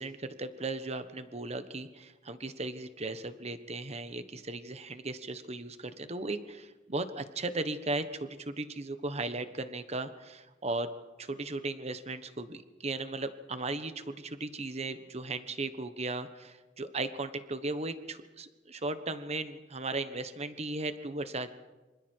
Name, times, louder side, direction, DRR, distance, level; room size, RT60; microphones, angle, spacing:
voice 1, 0.0-10.9 11.2-21.5, right 2 dB, 35° right, 10 dB, 1.3 m, -36 dB
27.0 x 26.0 x 4.7 m, 1.2 s
head